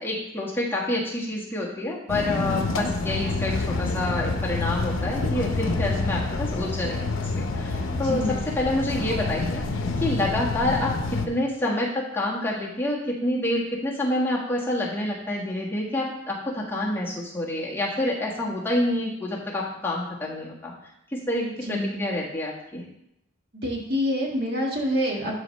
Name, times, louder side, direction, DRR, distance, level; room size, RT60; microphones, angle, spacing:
voice 1, 0.0-7.1 7.4-9.6 10.0-20.7 21.1-22.8, left 1 dB, 10° left, -5 dB, 1.5 m, -28 dB
sound 1, 2.1-11.3, left 3 dB, 75° left, 0.7 m, -27 dB
voice 2, 7.9-8.4 21.6-22.0 23.5-25.3, equal, 50° right, -1 dB, 1.7 m, -27 dB
11.5 x 5.0 x 3.2 m, 0.79 s
head